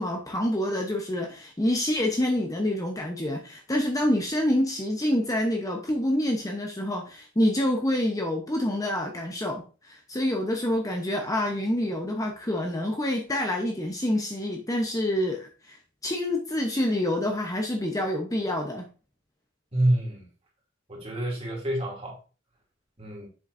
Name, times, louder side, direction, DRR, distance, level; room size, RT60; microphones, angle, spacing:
voice 1, 0.0-18.9, left 1 dB, 15° left, 2 dB, 0.9 m, -27 dB
voice 2, 19.7-20.2 20.9-22.2 23.0-23.3, right 1 dB, 30° right, -2 dB, 2.6 m, -27 dB
7.4 x 6.3 x 2.6 m, 0.34 s
head